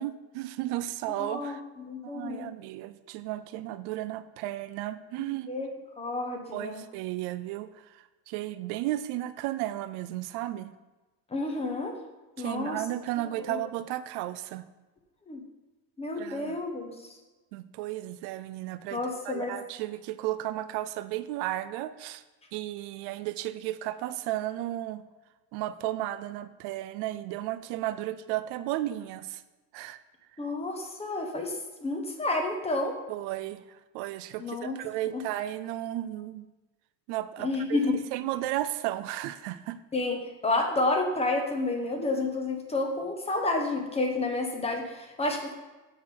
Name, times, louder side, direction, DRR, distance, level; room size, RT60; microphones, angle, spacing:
voice 1, 0.0-1.6 2.0-5.5 6.5-10.7 12.4-14.6 16.2-16.6 17.5-22.2 22.5-25.0 25.5-29.4 29.7-30.0 33.1-36.5 37.1-37.8 38.1-39.8, right 14 dB, 70° right, 13 dB, 0.5 m, -34 dB
voice 2, 1.2-2.5 5.2-6.9 11.3-11.9 12.4-12.8 13.4-13.6 15.3-15.4 16.0-16.9 18.9-19.6 30.4-33.0 34.4-34.8 35.1-35.2 37.4-38.0 39.9-45.5, left 2 dB, 15° left, 3 dB, 1.1 m, -30 dB
7.4 x 5.9 x 4.4 m, 1.2 s
cardioid pair, 135°, 40 cm